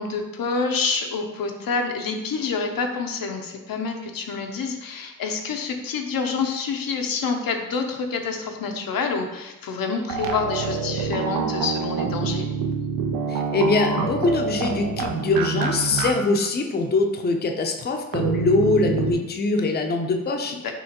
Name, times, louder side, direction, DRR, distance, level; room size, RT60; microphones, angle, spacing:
voice 1, 0.0-12.5 20.5-20.7, left 4 dB, 85° left, 4 dB, 0.6 m, -27 dB
sound 1, 10.1-16.1 16.4-16.5 18.1-19.1, right 5 dB, 85° right, 0.5 m, -26 dB
voice 2, 13.3-20.6, left 3 dB, 30° left, 3 dB, 0.4 m, -23 dB
5.5 x 2.9 x 2.8 m, 0.99 s
wide cardioid pair, 105°, 34 cm